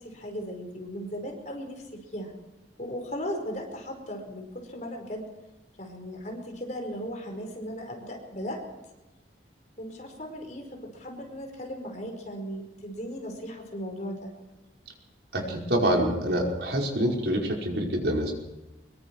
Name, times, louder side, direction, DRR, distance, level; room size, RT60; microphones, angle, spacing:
voice 1, 0.0-2.3 2.8-5.3 5.8-8.6 9.8-14.3, equal, 40° left, 2 dB, 5.0 m, -37 dB
voice 2, 15.3-18.3, right 1 dB, 65° right, 0 dB, 5.2 m, -26 dB
24.5 x 22.5 x 4.8 m, 1.0 s
head